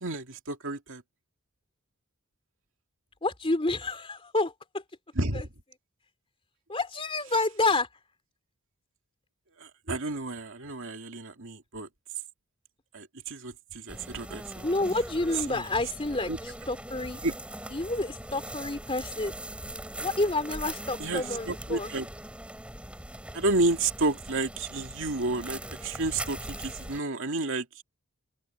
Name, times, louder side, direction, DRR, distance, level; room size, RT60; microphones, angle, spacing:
voice 1, 0.0-1.0 5.1-5.5 9.6-11.9 12.9-14.6 15.5-15.6 16.3-16.4 17.2-17.3 21.0-22.1 23.3-27.8, right 2 dB, 60° right, 2.5 m, -31 dB
voice 2, 3.2-4.5 5.3-5.4 6.7-7.9 14.6-17.2 17.7-19.3 20.0-21.9, left 2 dB, 25° left, 3.2 m, -29 dB
sound 1, 13.9-27.0, right 1 dB, 5° right, 4.2 m, -41 dB
open air
head